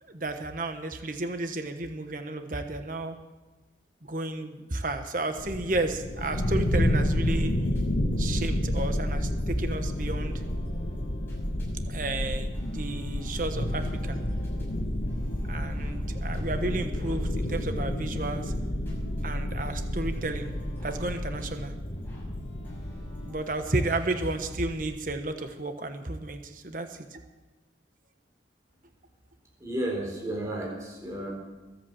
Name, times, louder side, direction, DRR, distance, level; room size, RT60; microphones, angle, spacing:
voice 1, 0.0-3.2 4.0-7.5 8.2-10.4 11.9-14.2 15.5-18.5 19.2-20.5 20.8-21.7 23.2-27.2, right 2 dB, 45° right, 7 dB, 1.2 m, -32 dB
sound 1, 5.4-23.3, left 1 dB, 70° left, 1.5 m, -30 dB
sound 2, 6.1-7.8 8.1-24.8, equal, 10° left, 6.6 m, -45 dB
voice 2, 29.6-31.3, right 1 dB, 15° right, -2 dB, 4.2 m, -32 dB
22.0 x 8.5 x 7.6 m, 1.2 s
head